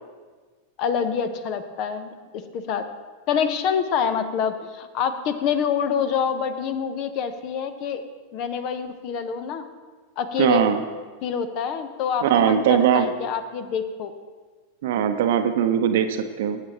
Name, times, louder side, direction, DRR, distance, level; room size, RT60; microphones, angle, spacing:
voice 1, 0.8-2.8 3.3-8.0 8.3-9.6 10.2-10.7 11.2-14.1, left 7 dB, 40° left, 11 dB, 0.9 m, -26 dB
voice 2, 10.4-10.8 12.2-13.1 14.8-16.6, right 9 dB, 55° right, 7 dB, 0.9 m, -20 dB
19.5 x 8.6 x 3.0 m, 1.4 s
figure-of-eight pair, 90°, 0 cm